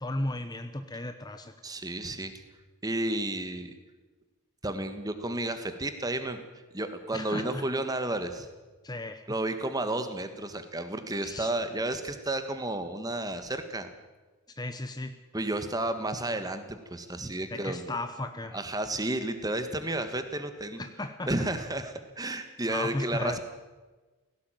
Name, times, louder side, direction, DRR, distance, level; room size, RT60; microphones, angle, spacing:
voice 1, 0.0-1.5 7.1-7.7 8.8-9.2 11.2-11.5 14.6-15.1 17.5-18.6 20.8-21.5 22.7-23.4, left 2 dB, 20° left, 8 dB, 0.9 m, -35 dB
voice 2, 1.6-2.4 2.8-3.7 4.6-6.4 6.7-8.5 9.3-13.9 15.3-17.9 18.5-20.8 21.3-23.4, right 1 dB, 15° right, 9 dB, 1.6 m, -32 dB
17.0 x 16.5 x 9.2 m, 1.3 s
head